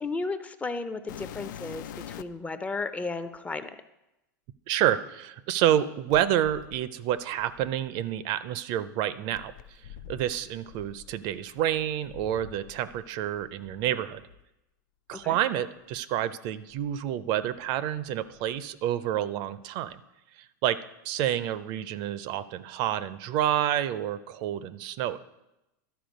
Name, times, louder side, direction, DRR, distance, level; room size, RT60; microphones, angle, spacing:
voice 1, 0.0-3.8 15.1-15.4, left 3 dB, 15° left, 10 dB, 0.4 m, -34 dB
sound 1, 1.1-2.5 3.3-3.4 6.1-8.2 9.3-13.1 13.3-14.4 15.2-15.3 15.9-16.0 16.7-17.8 18.1-18.6 19.9-20.0, left 10 dB, 80° left, 0.4 m, -46 dB
voice 2, 4.7-9.8 10.1-14.3 15.1-20.0 20.4-25.2, right 11 dB, 50° right, 15 dB, 0.4 m, -29 dB
12.0 x 4.3 x 5.2 m, 0.92 s
supercardioid pair, 125°, 10 cm